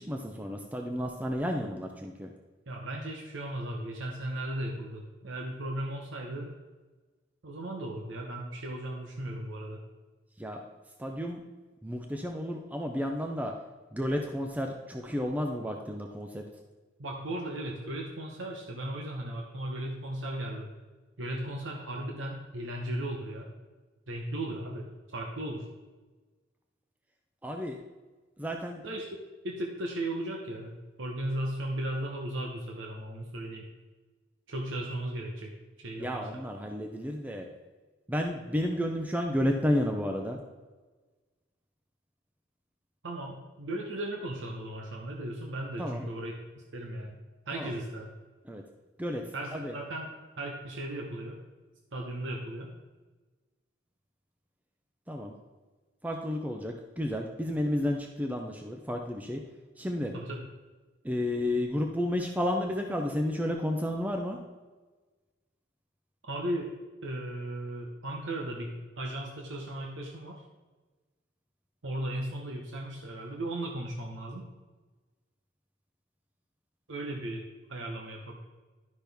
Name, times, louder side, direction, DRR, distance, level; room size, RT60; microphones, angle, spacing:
voice 1, 0.0-2.3 10.4-10.6 11.0-11.4 11.8-13.5 13.9-16.4 27.4-27.8 28.4-28.8 36.0-37.5 38.1-40.4 45.8-46.0 47.5-47.7 48.5-48.6 49.0-49.2 49.5-49.7 55.1-55.4 56.0-59.4 59.8-60.1 61.0-64.4, left 1 dB, 10° right, 2 dB, 0.6 m, -31 dB
voice 2, 2.7-6.5 7.4-9.8 17.0-20.7 21.2-23.5 24.1-25.7 28.8-29.1 29.4-33.7 34.5-35.5 35.8-36.3 43.0-47.2 47.5-48.2 49.3-50.1 50.4-51.4 51.9-52.7 60.1-60.4 66.2-66.7 67.0-70.4 71.8-74.5 76.9-78.4, right 1 dB, 85° right, 0 dB, 1.0 m, -36 dB
11.5 x 5.9 x 3.5 m, 1.3 s
head